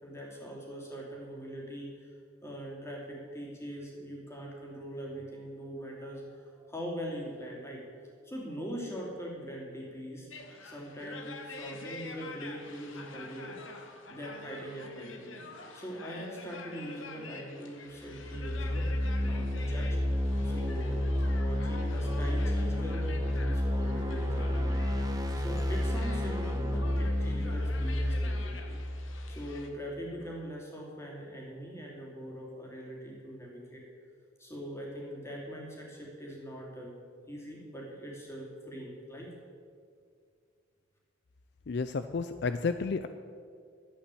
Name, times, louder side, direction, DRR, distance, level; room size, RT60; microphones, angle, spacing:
voice 1, 0.0-2.1 2.4-7.8 8.2-10.3 10.6-13.6 14.1-15.3 15.7-18.9 19.2-20.0 20.4-21.0 21.2-28.8 29.3-33.8 34.4-36.9 37.3-39.3, equal, 15° left, -2 dB, 2.8 m, -42 dB
sound 1, 10.3-29.7, left 3 dB, 85° left, 1.3 m, -47 dB
sound 2, 18.1-29.8, left 1 dB, 20° right, 1.1 m, -30 dB
voice 2, 41.7-43.1, left 4 dB, 60° left, 10 dB, 0.4 m, -31 dB
11.5 x 8.4 x 8.4 m, 2.1 s
head